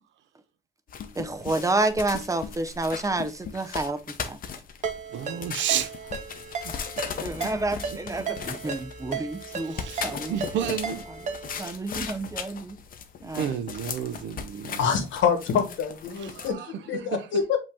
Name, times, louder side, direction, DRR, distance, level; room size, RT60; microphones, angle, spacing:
sound 1, 0.9-16.5, left 7 dB, 45° left, 0.6 m, -38 dB
voice 1, 1.2-4.0 4.3-4.4 7.2-10.5 11.6-12.8 13.2-13.5, right 2 dB, 15° right, 0.5 m, -29 dB
Ringtone, 4.8-11.7, right 5 dB, 40° right, 0.8 m, -36 dB
voice 2, 5.1-5.9 9.6-11.0 13.3-15.0 16.2-16.7, right 9 dB, 70° right, 0.6 m, -31 dB
voice 3, 14.8-17.6, left 7 dB, 75° left, 1.1 m, -26 dB
5.3 x 2.8 x 3.4 m
cardioid pair, 120°, 20 cm